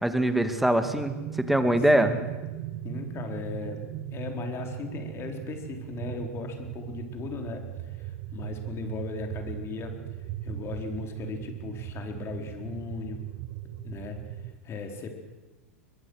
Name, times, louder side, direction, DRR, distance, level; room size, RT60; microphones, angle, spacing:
voice 1, 0.0-2.1, right 1 dB, ahead, 8 dB, 2.2 m, -23 dB
sound 1, 0.8-14.5, right 13 dB, 55° right, 1.4 m, -38 dB
voice 2, 1.9-2.3 2.8-3.8 4.1-10.0 10.4-13.2 13.8-15.2, left 4 dB, 35° left, 4 dB, 4.2 m, -37 dB
22.5 x 22.0 x 6.5 m, 1.2 s
hypercardioid pair, 100°, 8 cm